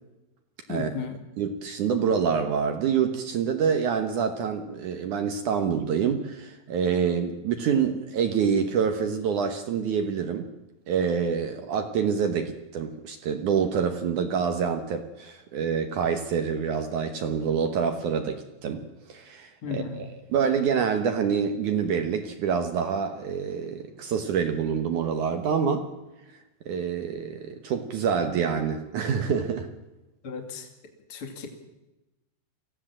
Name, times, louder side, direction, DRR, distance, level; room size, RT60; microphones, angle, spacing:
voice 1, 0.7-1.2 19.6-20.1 30.2-30.7 31.1-31.5, left 5 dB, 35° left, 4 dB, 3.1 m, -34 dB
voice 2, 1.4-10.5 10.9-18.8 19.1-25.9 26.7-29.7, right 7 dB, 65° right, 7 dB, 2.2 m, -26 dB
24.0 x 16.0 x 7.5 m, 1.0 s
omnidirectional pair, 4.7 m